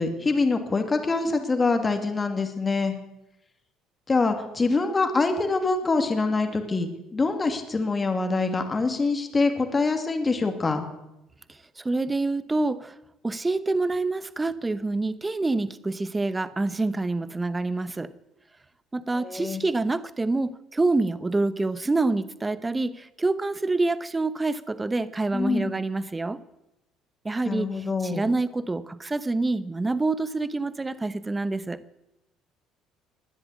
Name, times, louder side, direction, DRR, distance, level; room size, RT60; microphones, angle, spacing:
voice 1, 0.0-2.9 4.1-10.9 19.2-19.6 25.3-25.8 27.5-28.3, left 3 dB, 25° left, 2.4 m, -25 dB
voice 2, 11.5-12.9 13.2-18.1 18.9-26.4 27.2-31.8, right 2 dB, 15° right, 0.9 m, -27 dB
21.0 x 7.9 x 8.5 m
supercardioid pair, 95°, 0 cm